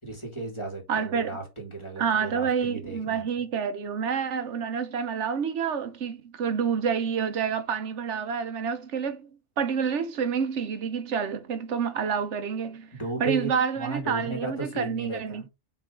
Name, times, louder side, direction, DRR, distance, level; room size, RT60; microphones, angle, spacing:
voice 1, 0.0-3.3 12.9-15.4, right 3 dB, 25° left, 2.4 m, -35 dB
voice 2, 0.9-1.4 2.0-9.3 9.6-12.9 13.2-15.4, right 6 dB, 85° right, 1.2 m, -28 dB
5.5 x 4.7 x 3.7 m
omnidirectional pair, 1.2 m